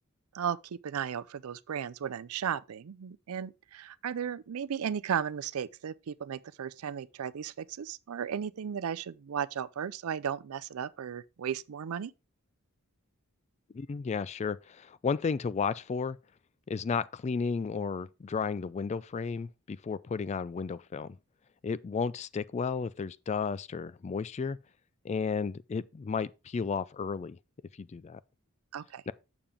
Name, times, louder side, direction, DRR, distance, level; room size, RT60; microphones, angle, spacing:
voice 1, 0.8-12.1 28.7-29.0, right 8 dB, 85° right, 0.4 m, -35 dB
voice 2, 13.7-16.2 16.7-21.2 21.6-24.6 25.0-27.4 27.8-28.2 29.1-29.2, left 5 dB, 30° left, 0.3 m, -33 dB
7.1 x 6.9 x 3.6 m
head